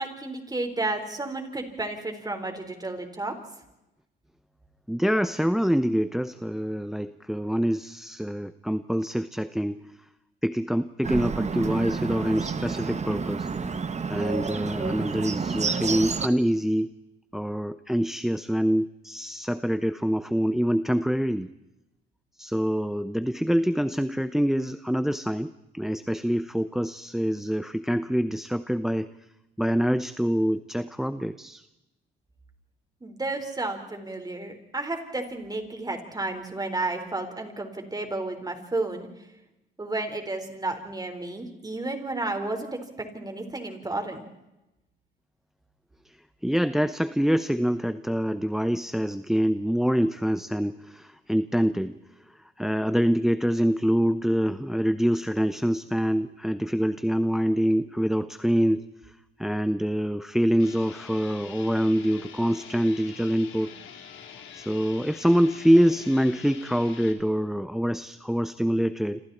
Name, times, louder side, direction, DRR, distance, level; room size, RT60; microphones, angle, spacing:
voice 1, 0.0-3.3 33.0-39.1 39.8-44.3, right 2 dB, 20° right, 5 dB, 4.5 m, -32 dB
voice 2, 4.9-10.0 10.4-13.5 14.1-17.0 17.3-21.5 22.4-29.1 29.6-31.7 46.1-46.2 46.4-52.0 52.3-63.7 64.5-69.2, equal, ahead, 13 dB, 0.7 m, -25 dB
Bird, 11.0-16.3, right 5 dB, 35° right, 1.6 m, -29 dB
sound 1, 60.6-67.1, left 8 dB, 75° left, 3.5 m, -45 dB
27.5 x 27.0 x 4.4 m, 0.94 s
cardioid pair, 90°, 20 cm